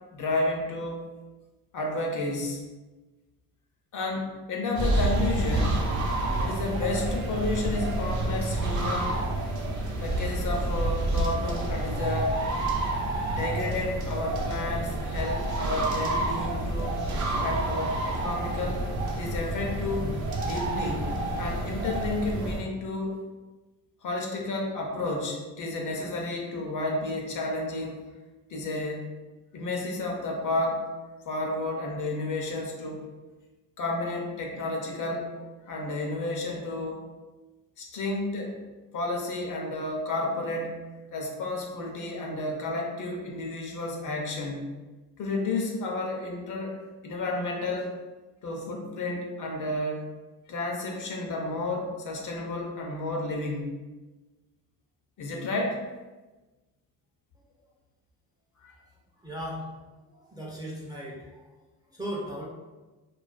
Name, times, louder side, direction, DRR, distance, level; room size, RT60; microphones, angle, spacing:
voice 1, 0.1-1.1 1.7-2.6 3.9-5.8 6.4-9.2 10.0-12.4 13.3-17.0 17.4-18.8 19.1-21.1 21.4-23.1 24.0-28.0 28.5-29.1 29.5-30.8 31.3-33.0 33.8-35.3 35.7-37.0 37.8-38.6 38.9-40.8 41.1-44.7 45.2-46.8 47.0-47.9 48.4-50.0 50.5-53.7 55.2-55.8 58.6-58.7, left 2 dB, 50° left, 0 dB, 0.6 m, -31 dB
sound 1, 4.7-22.6, right 2 dB, 50° right, 0.6 m, -29 dB
voice 2, 59.2-59.7 60.1-61.4 61.9-62.4, equal, 10° right, -5 dB, 0.5 m, -37 dB
2.4 x 2.3 x 2.4 m, 1.2 s
cardioid pair, 90°, 39 cm